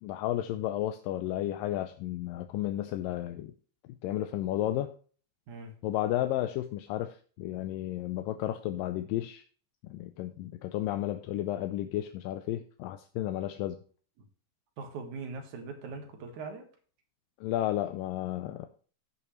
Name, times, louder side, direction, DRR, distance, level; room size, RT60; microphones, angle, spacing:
voice 1, 0.0-3.5 4.0-4.9 5.8-9.4 9.9-13.8 17.4-18.7, left 13 dB, 80° left, 8 dB, 2.3 m, -32 dB
voice 2, 14.8-16.7, right 4 dB, 65° right, 5 dB, 2.8 m, -41 dB
16.5 x 5.7 x 3.1 m, 0.41 s
omnidirectional pair, 4.0 m